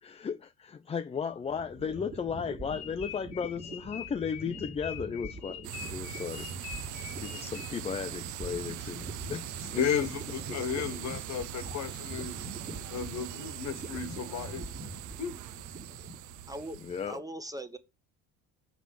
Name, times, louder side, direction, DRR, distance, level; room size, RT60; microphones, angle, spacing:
voice 1, 0.0-9.8 10.5-10.6 16.8-17.2, left 6 dB, 20° left, 0.4 m, -36 dB
sound 1, 1.3-16.6, right 1 dB, 30° right, 1.8 m, -45 dB
sound 2, 2.7-8.0, left 10 dB, 85° left, 0.9 m, -45 dB
sound 3, 5.6-17.2, right 12 dB, 65° right, 0.7 m, -41 dB
voice 2, 9.7-12.4 12.9-14.6 15.2-15.3, left 7 dB, 60° left, 1.3 m, -33 dB
voice 3, 16.5-16.8 17.1-17.8, right 1 dB, 10° right, 0.9 m, -41 dB
6.1 x 4.5 x 5.1 m
supercardioid pair, 90°, 32 cm